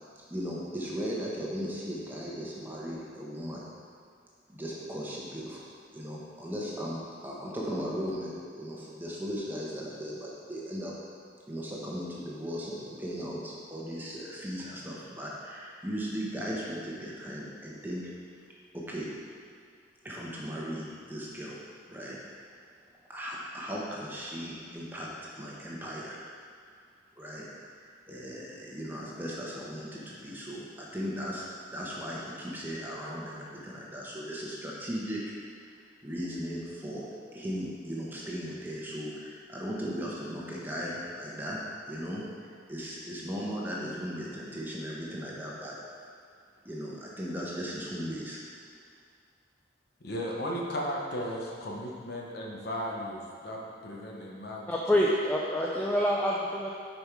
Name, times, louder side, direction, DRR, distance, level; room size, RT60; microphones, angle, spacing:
voice 1, 0.3-3.6 4.5-5.6 5.9-10.9 11.5-18.0 18.7-19.1 20.0-21.6 21.9-22.2 23.1-25.1 25.4-26.2 27.2-27.4 27.8-31.4 31.7-35.3 35.6-35.8 36.0-37.1 37.3-41.6 41.9-42.2 42.7-45.7 46.6-48.4, equal, 10° right, -5 dB, 1.1 m, -37 dB
voice 2, 50.0-55.0, equal, 55° left, -2 dB, 1.1 m, -36 dB
voice 3, 54.7-56.7, equal, 10° left, -4 dB, 0.4 m, -26 dB
7.1 x 5.4 x 4.8 m, 2.3 s
head